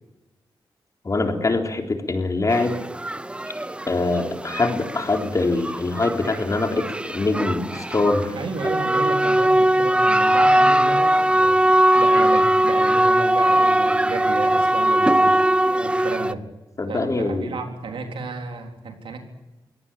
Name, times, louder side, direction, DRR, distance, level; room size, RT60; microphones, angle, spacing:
voice 1, 1.0-2.8 3.9-8.4 16.8-17.5, left 3 dB, 40° left, 4 dB, 3.7 m, -23 dB
sound 1, 2.5-16.3, right 1 dB, 10° right, 0.7 m, -20 dB
voice 2, 8.4-15.4 15.8-16.5 16.9-19.2, right 4 dB, 80° right, 4 dB, 4.0 m, -32 dB
23.0 x 18.0 x 8.9 m, 1.0 s
cardioid pair, 80°, 9 cm